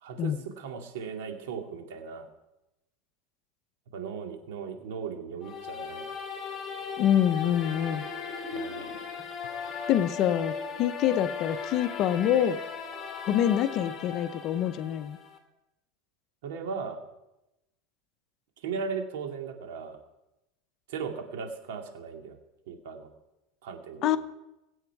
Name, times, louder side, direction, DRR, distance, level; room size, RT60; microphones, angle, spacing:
voice 1, 0.0-2.3 3.9-6.1 8.5-8.9 16.4-17.0 18.6-20.0 20.9-22.4 22.7-23.1 23.6-24.1, right 6 dB, 80° right, 4 dB, 2.3 m, -37 dB
sound 1, 5.4-15.4, left 6 dB, 25° left, 2.3 m, -37 dB
sound 2, 6.3-11.9 12.3-12.4, left 1 dB, 50° right, 3.3 m, -46 dB
voice 2, 7.0-8.0 9.9-12.6 13.3-15.2 24.0-24.2, left 10 dB, 40° left, 12 dB, 0.8 m, -26 dB
21.5 x 8.1 x 4.7 m, 0.94 s
supercardioid pair, 140°, 0 cm